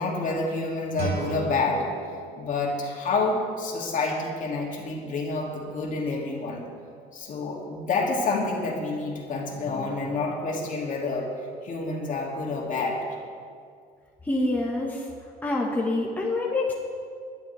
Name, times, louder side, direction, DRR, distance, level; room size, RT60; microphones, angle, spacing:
voice 1, 0.0-1.9 2.4-6.7 7.1-11.3 11.6-13.0, left 3 dB, 50° left, -1 dB, 2.8 m, -28 dB
Guitar, 0.9-3.7, right 3 dB, 65° right, 2.6 m, -36 dB
voice 2, 14.2-15.1 15.4-16.7, left 2 dB, 10° left, -2 dB, 1.7 m, -26 dB
21.0 x 11.0 x 3.5 m, 2.3 s
cardioid pair, 110°, 17 cm